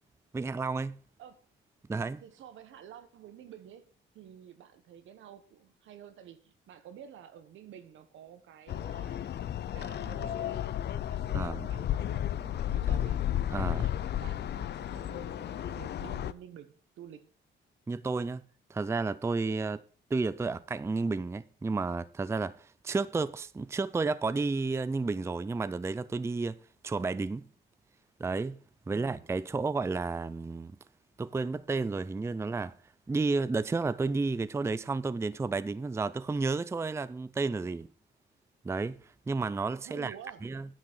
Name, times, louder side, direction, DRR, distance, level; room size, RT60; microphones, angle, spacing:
voice 1, 0.3-1.0 1.9-2.2 11.3-11.7 13.5-13.9 17.9-18.4 18.7-19.8 20.1-26.6 26.8-27.5 28.2-28.6 28.9-30.7 31.2-32.8 33.1-37.9 38.6-39.0 39.3-40.1 40.4-40.7, right 3 dB, 15° right, 0.4 m, -31 dB
voice 2, 2.2-9.2 9.7-10.7 11.0-13.3 13.7-17.3 28.9-29.3 39.8-40.5, right 9 dB, 80° right, 1.3 m, -50 dB
sound 1, 8.7-16.3, left 11 dB, 60° left, 0.6 m, -33 dB
9.8 x 6.2 x 6.2 m
cardioid pair, 90°, 20 cm